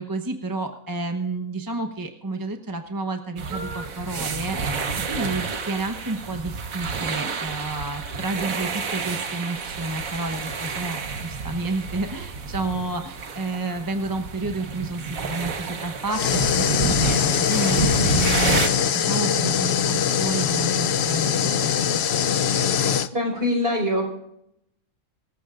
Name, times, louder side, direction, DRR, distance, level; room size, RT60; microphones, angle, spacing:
voice 1, 0.0-22.0, right 2 dB, 15° right, 4 dB, 0.9 m, -31 dB
sound 1, 3.4-18.7, right 5 dB, 90° right, 1.7 m, -30 dB
sound 2, 16.1-23.1, left 8 dB, 60° left, 0.8 m, -22 dB
voice 2, 23.1-24.0, left 1 dB, 45° right, 1 dB, 5.1 m, -23 dB
25.5 x 14.5 x 2.5 m, 0.79 s
omnidirectional pair, 1.4 m